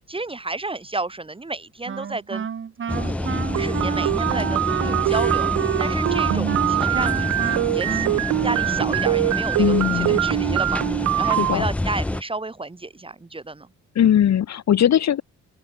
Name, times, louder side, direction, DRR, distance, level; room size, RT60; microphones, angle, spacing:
voice 1, 0.1-2.5 2.9-3.3 3.6-5.5 5.8-8.1 8.4-13.7, right 2 dB, 20° right, 2.1 m, -31 dB
Wind instrument woodwind instrument, 1.9-9.3, right 7 dB, 40° right, 1.4 m, -30 dB
sound 1, 2.9-12.2, left 1 dB, 5° left, 0.3 m, -27 dB
sound 2, 3.5-11.6, right 15 dB, 65° right, 0.5 m, -23 dB
voice 2, 9.6-10.2 11.2-11.7 13.9-15.2, left 10 dB, 60° left, 2.8 m, -19 dB
cardioid pair, 90°, 30 cm